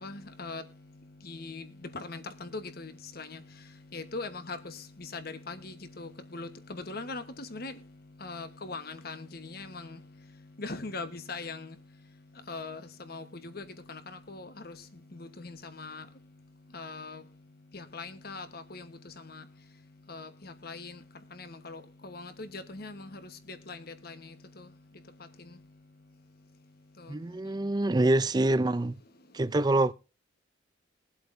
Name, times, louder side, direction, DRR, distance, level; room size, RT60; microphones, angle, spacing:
voice 1, 0.0-0.6 1.3-1.6 1.9-3.4 3.9-7.7 8.2-10.0 10.6-11.7 12.5-12.8 13.1-14.0 14.3-14.7 15.4-16.0 16.7-17.2 17.7-18.9 19.3-19.4 20.1-20.9 21.4-23.2 23.5-23.8 24.0-24.1, left 3 dB, 50° left, 1.2 m, -40 dB
voice 2, 27.1-28.9 29.3-29.9, right 2 dB, 20° right, 0.4 m, -25 dB
21.5 x 7.9 x 2.6 m
head